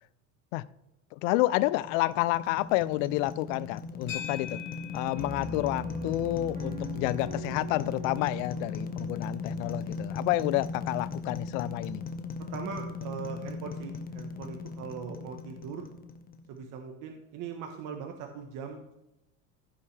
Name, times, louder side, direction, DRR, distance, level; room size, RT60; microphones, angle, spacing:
voice 1, 1.1-4.6 4.9-12.0, left 18 dB, 70° left, 18 dB, 0.5 m, -29 dB
sound 1, 1.4-16.6, left 4 dB, 25° left, 0.9 m, -38 dB
sound 2, 4.1-12.5, left 8 dB, 50° left, 3.8 m, -47 dB
Piano, 5.2-10.7, right 3 dB, 20° right, 1.7 m, -44 dB
voice 2, 12.4-15.9 16.5-18.9, right 6 dB, 50° right, 3 dB, 1.2 m, -40 dB
15.5 x 5.6 x 3.3 m, 0.89 s
supercardioid pair, 115°, 39 cm